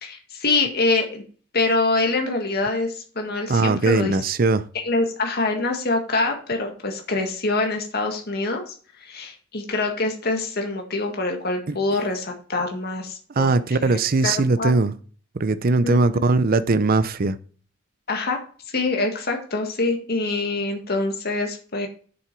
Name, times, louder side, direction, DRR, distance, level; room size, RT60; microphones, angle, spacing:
voice 1, 0.0-1.2 1.5-4.1 4.8-8.7 9.0-14.7 15.8-15.9 18.1-18.4 18.7-21.9, left 3 dB, 55° left, 1.8 m, -25 dB
voice 2, 3.5-4.6 11.7-11.8 13.4-14.9 15.4-17.4, right 3 dB, 50° right, 0.6 m, -20 dB
7.6 x 7.1 x 4.5 m
head